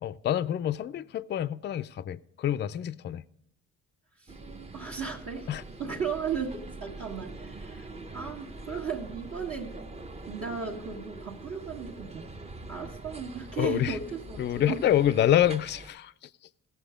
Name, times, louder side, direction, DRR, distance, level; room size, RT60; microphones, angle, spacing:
voice 1, 0.0-3.2 5.5-5.6 13.6-14.0 14.4-16.3, left 11 dB, 35° left, 0.4 m, -27 dB
sound 1, 4.3-15.9, right 2 dB, 20° right, 0.7 m, -44 dB
voice 2, 4.7-5.5 5.8-7.9 8.1-9.8 10.3-12.3 12.7-14.8, right 6 dB, 55° right, 1.7 m, -35 dB
16.5 x 7.0 x 5.0 m
cardioid pair, 90°, 30 cm